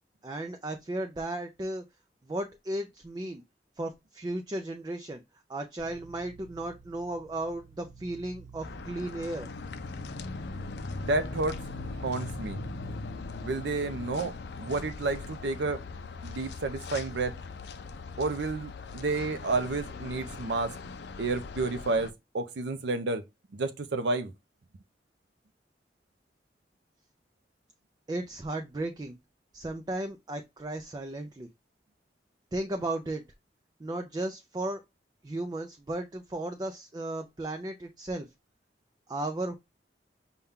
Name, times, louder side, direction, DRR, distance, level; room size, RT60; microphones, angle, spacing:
voice 1, 0.2-1.8 2.2-3.4 3.8-5.2 5.5-9.5 28.1-29.2 29.5-31.5 32.5-33.2 33.8-34.8 35.2-38.3 39.1-39.5, right 1 dB, 25° right, 0.4 m, -35 dB
sound 1, 5.8-15.7, right 3 dB, 20° left, 0.8 m, -48 dB
sound 2, 8.6-22.1, left 4 dB, 70° left, 0.4 m, -40 dB
voice 2, 11.0-11.6 11.9-12.6 13.4-14.3 14.6-15.8 16.2-17.3 18.2-20.7 21.2-23.2 23.5-24.3, right 3 dB, 85° right, 0.5 m, -30 dB
5.5 x 2.3 x 3.6 m
head